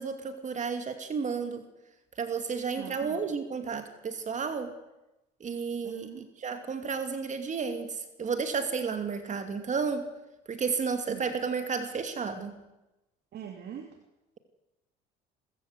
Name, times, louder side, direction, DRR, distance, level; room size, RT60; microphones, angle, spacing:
voice 1, 0.0-1.6 2.2-4.7 5.4-10.1 10.5-12.5, right 5 dB, 40° right, 8 dB, 2.6 m, -32 dB
voice 2, 2.8-3.3 5.8-6.2 11.1-11.3 13.3-14.0, right 9 dB, 60° right, 4 dB, 2.6 m, -43 dB
29.0 x 15.0 x 8.1 m, 0.97 s
supercardioid pair, 85°, 20 cm